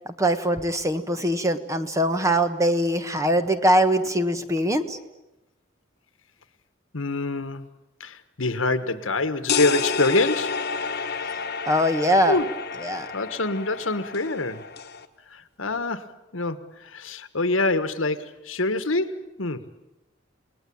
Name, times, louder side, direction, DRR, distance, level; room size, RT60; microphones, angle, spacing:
voice 1, 0.2-5.0 11.7-12.4 12.8-13.1, equal, 15° right, 1.4 m, -22 dB
voice 2, 6.9-7.7 8.0-10.7 10.9-11.2 12.3-12.5 13.1-14.7 15.3-19.7, left 2 dB, 85° left, 1.5 m, -26 dB
sound 1, 9.5-15.1, left 5 dB, 55° left, 1.4 m, -30 dB
29.5 x 19.5 x 8.8 m
head